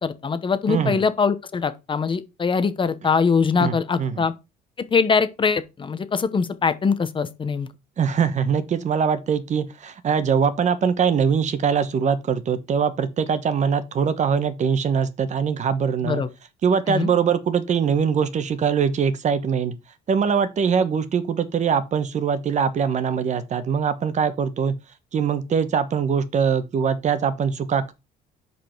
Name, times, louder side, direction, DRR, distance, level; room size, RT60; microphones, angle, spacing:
voice 1, 0.0-4.3 4.8-7.7 16.0-16.3 16.9-17.1, left 5 dB, 30° left, 0.9 m, -22 dB
voice 2, 0.7-1.0 3.6-4.2 8.0-16.2 16.6-19.7 20.1-24.7 25.1-27.9, right 7 dB, 45° right, 1.1 m, -22 dB
6.8 x 5.2 x 4.5 m
cardioid pair, 110°, 17 cm